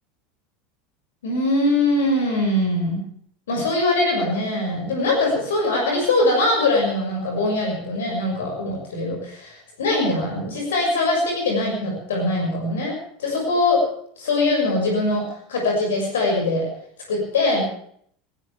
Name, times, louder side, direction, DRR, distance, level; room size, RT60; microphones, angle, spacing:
voice 1, 1.2-3.0 3.5-13.8 14.2-16.7 17.1-17.6, left 2 dB, 65° left, 1 dB, 6.3 m, -22 dB
20.5 x 18.0 x 3.5 m, 0.62 s
figure-of-eight pair, 75°, 0 cm